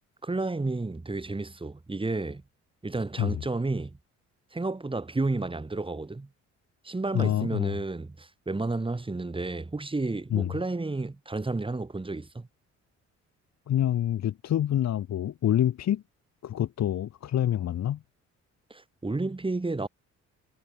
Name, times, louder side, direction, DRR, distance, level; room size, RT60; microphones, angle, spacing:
voice 1, 0.2-2.4 2.8-4.0 4.5-6.3 6.8-12.5 18.7-19.9, right 3 dB, 15° right, 3.5 m, -31 dB
voice 2, 7.1-7.7 10.3-10.5 13.7-16.0 16.4-18.0, left 11 dB, 60° left, 1.5 m, -26 dB
cardioid pair, 90°, 30 cm